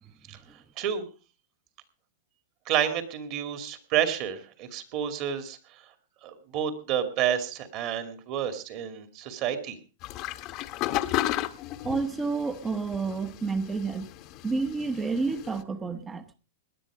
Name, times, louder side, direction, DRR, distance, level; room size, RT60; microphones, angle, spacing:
voice 1, 2.7-5.6 6.2-9.8, right 9 dB, 40° right, 2.4 m, -29 dB
sound 1, 10.0-15.6, left 15 dB, 40° left, 1.0 m, -34 dB
voice 2, 11.8-14.1 14.4-16.2, right 4 dB, 15° right, 0.9 m, -29 dB
18.5 x 10.0 x 4.9 m
supercardioid pair, 145°, 0 cm